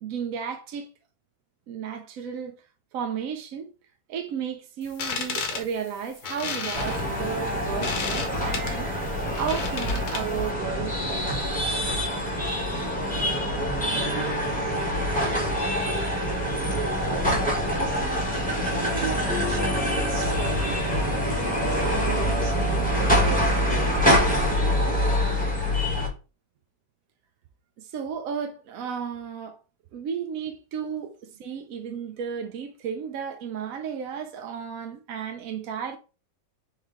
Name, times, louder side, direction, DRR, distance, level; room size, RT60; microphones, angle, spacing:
voice 1, 0.0-0.9 1.7-2.6 2.9-3.7 4.1-8.9 9.4-11.5 27.8-29.6 29.9-36.0, right 7 dB, 75° right, 0.8 m, -33 dB
sound 1, 4.8-10.5, left 5 dB, 60° left, 1.2 m, -33 dB
sound 2, 6.7-26.1, equal, 5° left, 0.8 m, -25 dB
voice 2, 14.2-14.8 15.6-15.9 16.7-23.6 31.3-31.4, right 5 dB, 50° right, 1.4 m, -39 dB
sound 3, 19.3-23.1, left 6 dB, 85° left, 1.3 m, -39 dB
4.5 x 3.2 x 3.6 m
omnidirectional pair, 2.0 m